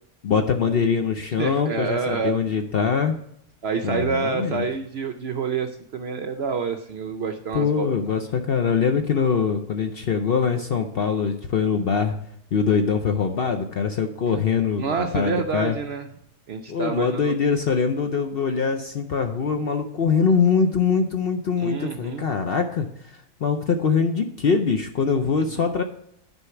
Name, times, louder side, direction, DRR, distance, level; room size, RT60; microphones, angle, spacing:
voice 1, 0.2-3.2 3.8-4.7 7.5-12.2 12.5-15.8 16.7-22.9 23.1-25.8, left 6 dB, 60° left, 6 dB, 0.6 m, -23 dB
voice 2, 1.4-2.4 3.6-7.9 14.8-16.1 16.5-17.3 21.6-22.3, right 5 dB, 65° right, 6 dB, 0.6 m, -27 dB
9.8 x 4.5 x 5.8 m, 0.73 s
omnidirectional pair, 1.6 m